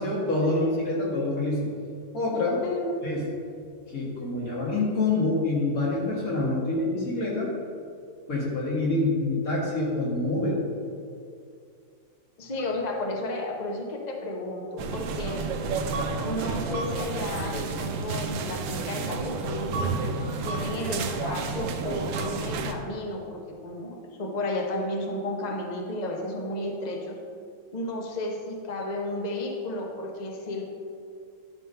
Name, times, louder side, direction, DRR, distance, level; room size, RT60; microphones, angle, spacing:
voice 1, 0.0-1.7 2.1-2.6 3.0-3.3 3.9-7.5 8.3-10.6, left 2 dB, 45° left, -4 dB, 2.1 m, -26 dB
voice 2, 2.6-3.0 12.4-15.4 16.2-19.9 20.4-27.2 27.7-30.6, left 1 dB, 90° left, 1 dB, 0.3 m, -33 dB
sound 1, 14.8-22.7, right 4 dB, 70° right, 1.3 m, -31 dB
11.0 x 3.8 x 5.5 m, 2.3 s
omnidirectional pair, 2.3 m